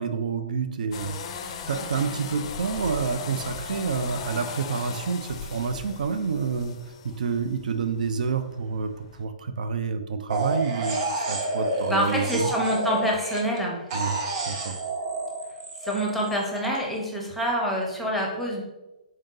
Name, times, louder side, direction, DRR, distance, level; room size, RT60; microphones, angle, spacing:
voice 1, 0.0-6.8 7.0-12.5 13.9-14.2 14.5-14.8, right 5 dB, 75° right, 8 dB, 0.4 m, -28 dB
sound 1, 0.9-9.2, left 6 dB, 45° left, 0.4 m, -38 dB
sound 2, 10.3-13.6 13.9-16.8, right 2 dB, 35° right, 0.8 m, -29 dB
voice 2, 11.9-13.9 15.8-18.6, equal, ahead, -2 dB, 0.6 m, -26 dB
3.7 x 2.7 x 3.7 m, 1.0 s
hypercardioid pair, 155°, 4 cm